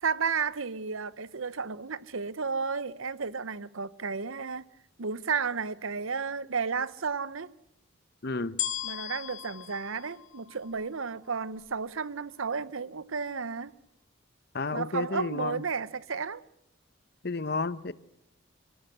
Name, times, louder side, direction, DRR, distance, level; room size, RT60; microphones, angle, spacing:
voice 1, 0.0-4.7 5.0-7.5 8.8-13.7 14.7-16.4, right 5 dB, 75° right, 0.9 m, -32 dB
voice 2, 8.2-8.6 14.5-15.6 17.2-17.9, left 3 dB, 50° left, 0.9 m, -31 dB
sound 1, 8.6-11.0 11.6-11.7, left 11 dB, 80° left, 2.3 m, -36 dB
26.0 x 17.5 x 7.9 m
head